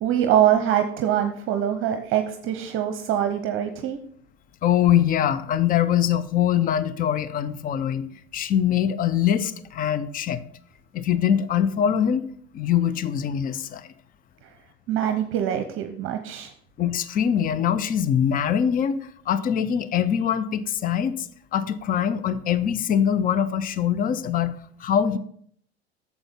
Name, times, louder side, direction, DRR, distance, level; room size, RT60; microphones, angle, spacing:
voice 1, 0.0-4.0 14.4-14.5 14.9-16.5, right 10 dB, 40° right, 7 dB, 0.8 m, -24 dB
voice 2, 4.6-8.1 8.3-10.4 10.9-12.2 12.5-13.9 16.8-19.0 19.3-25.2, left 9 dB, 25° left, 16 dB, 0.6 m, -23 dB
8.8 x 7.2 x 3.6 m, 0.62 s
hypercardioid pair, 85°, 33 cm